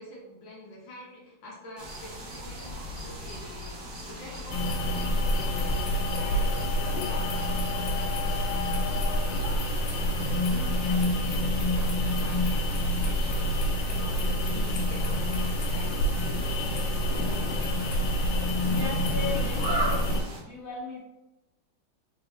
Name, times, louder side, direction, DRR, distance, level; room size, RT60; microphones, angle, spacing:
voice 1, 0.0-17.9, left 1 dB, 70° left, -3 dB, 1.6 m, -46 dB
sound 1, 1.8-20.4, equal, 45° right, 1.6 m, -39 dB
sound 2, 4.5-20.2, equal, 90° left, 1.6 m, -27 dB
voice 2, 18.6-20.1 20.4-21.0, left 3 dB, 10° left, -6 dB, 1.2 m, -37 dB
4.5 x 4.1 x 2.6 m, 0.98 s
omnidirectional pair, 2.3 m